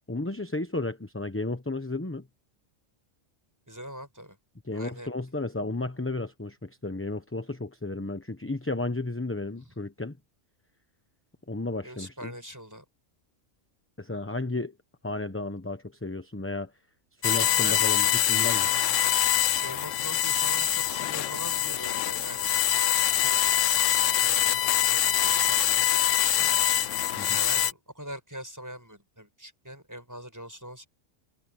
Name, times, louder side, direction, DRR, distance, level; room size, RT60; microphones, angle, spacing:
voice 1, 0.1-2.3 4.6-10.2 11.5-12.3 14.0-14.7 15.0-16.7 17.2-18.7 27.2-27.4, left 2 dB, 10° left, 0.9 m, -33 dB
voice 2, 3.7-4.4 4.7-5.1 11.8-12.8 17.3-18.0 19.5-22.4 22.8-26.7 27.3-30.9, equal, 15° right, 7.1 m, -43 dB
sound 1, 17.2-27.7, left 11 dB, 85° left, 1.1 m, -24 dB
omnidirectional pair, 1.3 m